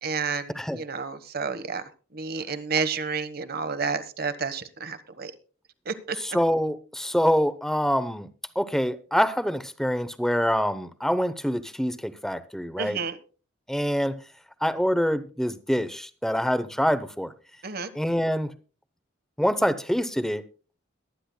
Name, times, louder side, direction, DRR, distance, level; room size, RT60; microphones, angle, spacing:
voice 1, 0.0-1.8 2.1-5.3 5.8-6.2 12.8-13.2 17.6-17.9, right 5 dB, 50° right, 1.2 m, -30 dB
voice 2, 6.2-8.3 8.6-13.0 13.7-14.2 14.6-17.3 17.9-18.5 19.4-20.4, equal, ahead, 0.7 m, -25 dB
22.0 x 9.9 x 2.2 m
head